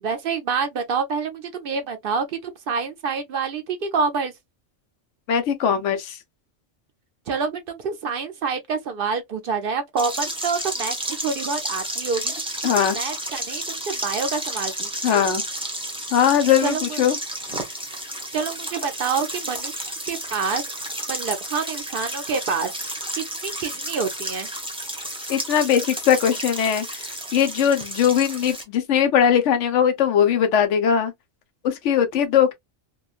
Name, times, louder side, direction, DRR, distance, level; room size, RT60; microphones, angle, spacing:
voice 1, 0.0-4.3 7.3-12.4 12.7-15.3 16.6-17.0 18.3-20.6 21.1-22.7 23.1-24.5, right 5 dB, 60° right, 0.7 m, -27 dB
voice 2, 5.3-6.2 12.6-13.0 15.0-15.4 16.1-17.2 25.3-26.9 27.3-31.1 31.6-32.5, left 8 dB, 85° left, 1.0 m, -20 dB
sound 1, 10.0-28.6, right 1 dB, 5° right, 0.6 m, -31 dB
3.0 x 2.2 x 2.4 m
omnidirectional pair, 1.2 m